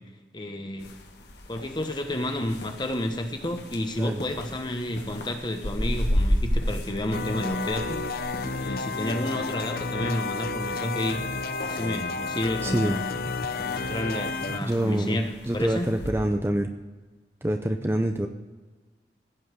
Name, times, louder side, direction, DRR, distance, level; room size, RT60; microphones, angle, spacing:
voice 1, 0.3-0.9 1.5-8.0 8.6-11.2 11.6-13.0 13.5-15.9, left 1 dB, 25° left, 5 dB, 1.1 m, -31 dB
sound 1, 0.8-16.1, equal, 75° left, 1.7 m, -34 dB
sound 2, 7.1-14.6, left 4 dB, 55° left, 0.6 m, -31 dB
voice 2, 12.6-13.0 13.7-13.8 14.6-16.7 17.4-18.3, right 1 dB, 15° right, 5 dB, 0.5 m, -26 dB
16.0 x 5.6 x 8.1 m, 1.3 s
head